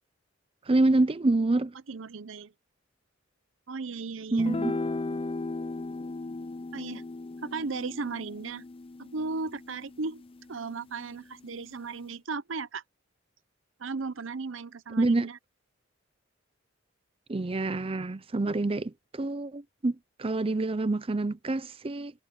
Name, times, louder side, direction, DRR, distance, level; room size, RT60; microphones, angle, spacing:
voice 1, 0.7-1.7 4.3-4.8 15.0-15.3 17.3-22.1, right 2 dB, 30° right, 0.5 m, -27 dB
voice 2, 1.9-2.5 3.7-4.5 6.7-7.0 7.4-8.6 9.0-10.2 10.5-12.8 13.8-15.4, right 4 dB, 70° right, 0.8 m, -36 dB
sound 1, 4.4-10.9, left 2 dB, 30° left, 0.5 m, -36 dB
head